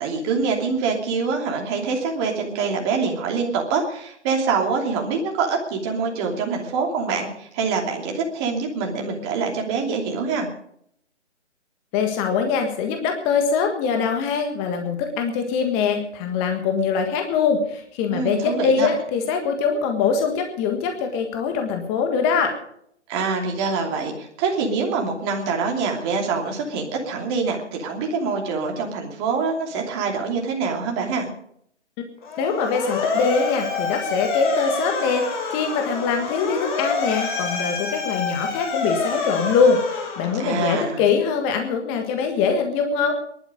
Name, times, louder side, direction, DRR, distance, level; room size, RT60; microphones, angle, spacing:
voice 1, 0.0-10.5 18.1-18.9 23.1-31.3 40.4-41.0, right 5 dB, 25° right, 1 dB, 2.8 m, -25 dB
voice 2, 11.9-22.5 32.4-43.1, left 5 dB, 15° left, 5 dB, 1.6 m, -23 dB
Motor vehicle (road) / Siren, 32.2-40.8, left 4 dB, 45° left, 3.7 m, -27 dB
20.5 x 11.5 x 5.2 m, 0.69 s
figure-of-eight pair, 140°, 35 cm